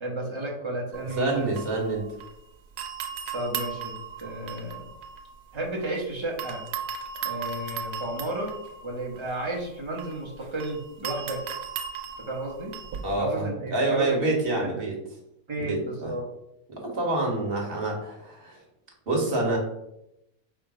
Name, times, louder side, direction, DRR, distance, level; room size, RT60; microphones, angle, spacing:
voice 1, 0.0-1.5 3.3-3.9 4.2-4.8 5.5-6.6 7.2-8.5 8.8-11.4 12.2-12.7 13.2-14.1 14.6-14.8 15.5-16.2, right 1 dB, 25° right, -2 dB, 0.7 m, -32 dB
sound 1, 0.9-2.4 2.8-6.0 6.4-13.2, right 6 dB, 90° right, 1.2 m, -37 dB
voice 2, 1.1-2.0 13.0-14.9 15.6-16.1 16.7-18.6 19.1-19.6, right 2 dB, 40° right, -1 dB, 1.2 m, -27 dB
4.8 x 2.1 x 4.8 m, 0.83 s
omnidirectional pair, 1.7 m